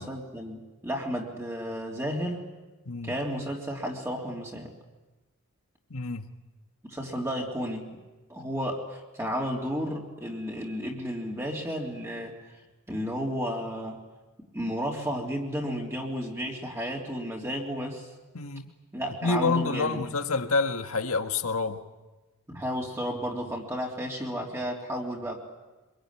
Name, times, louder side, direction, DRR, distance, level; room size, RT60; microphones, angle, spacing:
voice 1, 0.0-2.5 3.0-4.7 6.9-7.9 8.3-12.3 12.9-14.0 14.5-18.1 18.9-20.0 22.5-25.4, equal, 10° right, -1 dB, 3.4 m, -32 dB
voice 2, 2.9-3.2 5.9-6.3 18.3-18.7 19.2-21.8, left 4 dB, 70° left, 7 dB, 1.7 m, -28 dB
26.0 x 22.5 x 9.8 m, 1.2 s
head